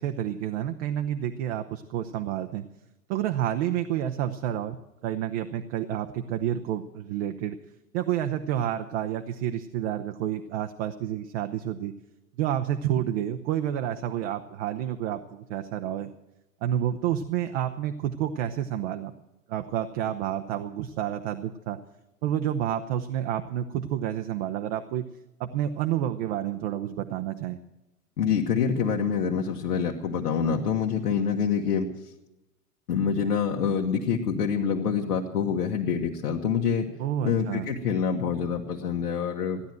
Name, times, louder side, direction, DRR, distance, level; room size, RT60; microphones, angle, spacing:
voice 1, 0.0-2.6 3.1-4.8 5.0-7.6 7.9-11.9 12.4-16.1 16.6-19.1 19.5-21.8 22.2-25.1 25.4-27.6 37.0-37.7, right 11 dB, 45° right, 6 dB, 0.9 m, -29 dB
voice 2, 28.2-31.9 32.9-36.9 37.2-39.6, left 7 dB, 70° left, -1 dB, 1.5 m, -26 dB
16.0 x 10.5 x 7.8 m, 0.96 s
figure-of-eight pair, 85°, 47 cm